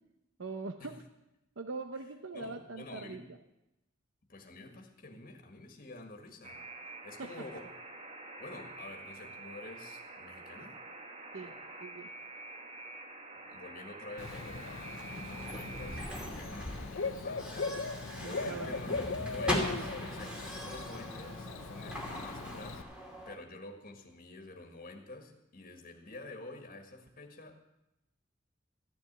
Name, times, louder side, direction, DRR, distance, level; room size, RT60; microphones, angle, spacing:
voice 1, 0.4-0.9 1.6-3.4 11.3-12.1 18.2-18.8, right 3 dB, 75° right, 7 dB, 0.8 m, -42 dB
voice 2, 2.3-3.3 4.3-6.6 7.0-7.7 8.4-10.8 13.5-17.9 18.2-27.6, left 2 dB, 45° left, 3 dB, 1.7 m, -48 dB
Alarm, 6.4-16.3, right 3 dB, 35° right, 1.5 m, -47 dB
Bird / Cricket, 14.2-22.8, left 4 dB, 70° left, 0.7 m, -39 dB
sound 1, 14.2-23.4, equal, 5° right, 2.6 m, -40 dB
14.0 x 7.2 x 9.2 m, 0.90 s
head